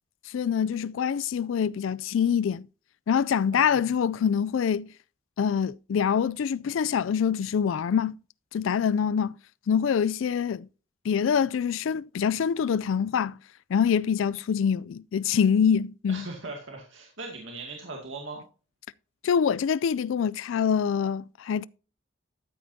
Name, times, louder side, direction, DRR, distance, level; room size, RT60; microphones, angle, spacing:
voice 1, 0.3-2.7 3.1-4.9 5.4-8.2 8.5-9.3 9.7-10.7 11.0-13.4 13.7-16.3 19.2-21.7, left 7 dB, 80° left, 0.3 m, -25 dB
voice 2, 3.5-3.9 16.1-18.5, right 3 dB, 75° right, 2.2 m, -39 dB
13.5 x 8.5 x 2.7 m
head